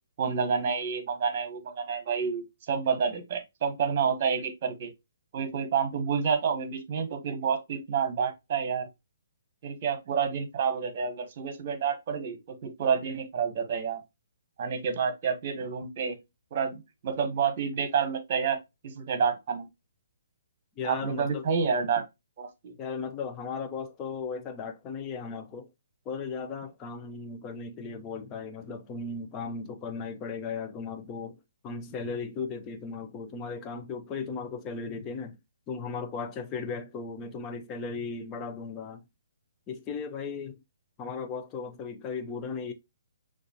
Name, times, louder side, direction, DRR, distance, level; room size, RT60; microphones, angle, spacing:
voice 1, 0.2-4.9 5.3-8.9 9.6-14.0 14.6-16.2 16.5-18.6 18.8-19.7 20.8-22.0 22.4-22.7, right 6 dB, 45° right, 1.1 m, -29 dB
voice 2, 20.8-21.5 22.8-25.7 26.1-31.4 31.6-35.4 35.7-39.0 39.7-40.6 41.0-42.7, left 5 dB, 25° left, 0.7 m, -36 dB
6.4 x 2.5 x 2.9 m
hypercardioid pair, 140°, 0 cm